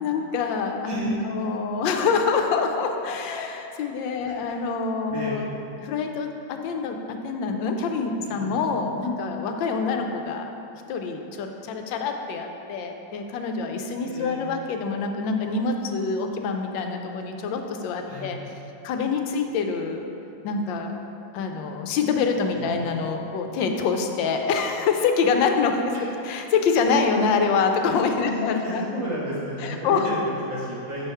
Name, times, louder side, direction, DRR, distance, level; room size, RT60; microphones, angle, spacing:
voice 1, 0.0-5.5 5.8-10.5 10.9-18.4 18.8-20.0 20.4-21.0 21.3-25.9 26.2-28.8 29.6-30.0, left 5 dB, 85° left, 4 dB, 1.3 m, -26 dB
voice 2, 0.9-1.4 4.2-4.5 5.1-5.3 8.2-8.5 14.0-14.4 18.1-18.3 22.6-22.7 25.9-26.0 28.2-31.0, equal, 90° right, -8 dB, 2.5 m, -32 dB
6.8 x 3.5 x 5.5 m, 2.8 s
omnidirectional pair, 2.0 m